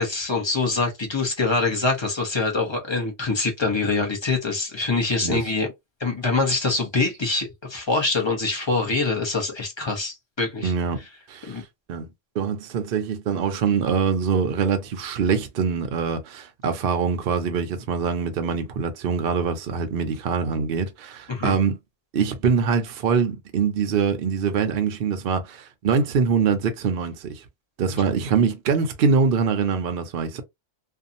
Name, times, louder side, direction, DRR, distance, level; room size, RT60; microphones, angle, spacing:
voice 1, 0.0-5.7 6.0-10.7 11.5-11.6 21.3-21.5, left 3 dB, 25° left, 0.7 m, -24 dB
voice 2, 5.2-5.5 10.6-11.0 11.3-21.8 22.1-27.4 27.8-30.4, right 6 dB, 60° right, 0.7 m, -24 dB
2.6 x 2.3 x 2.5 m
omnidirectional pair, 1.3 m